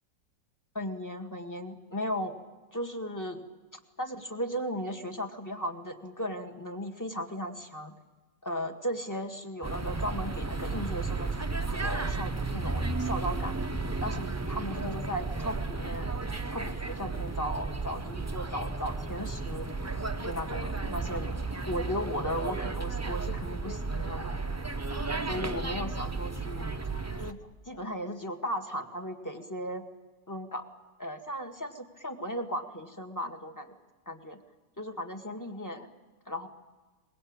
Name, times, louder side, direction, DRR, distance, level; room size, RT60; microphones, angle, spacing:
voice 1, 0.7-2.4 2.7-3.4 4.0-7.9 8.4-13.6 14.0-19.7 20.2-24.4 25.3-26.8 27.2-27.4 27.7-29.8 30.3-30.7 31.0-33.7 34.1-34.4 34.8-35.9 36.3-36.5, equal, 10° left, 5 dB, 1.8 m, -36 dB
sound 1, 9.6-27.3, right 3 dB, 15° right, 0.5 m, -33 dB
24.0 x 22.0 x 8.9 m, 1.2 s
omnidirectional pair, 2.0 m